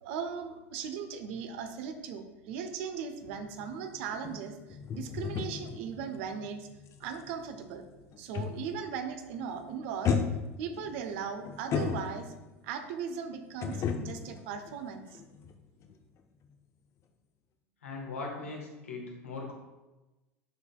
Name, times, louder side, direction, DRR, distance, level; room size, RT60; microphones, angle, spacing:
voice 1, 0.0-6.7 7.0-7.9 8.2-10.2 10.6-12.3 12.6-15.2, right 6 dB, 65° right, 7 dB, 0.8 m, -38 dB
sound 1, 3.2-8.9 9.2-9.5 10.0-12.5 13.6-15.5 15.8-16.0, left 6 dB, 40° left, 0.6 m, -35 dB
voice 2, 17.8-19.5, left 3 dB, 85° left, 0 dB, 1.3 m, -39 dB
10.5 x 4.0 x 2.3 m, 1.1 s
hypercardioid pair, 80°, 7 cm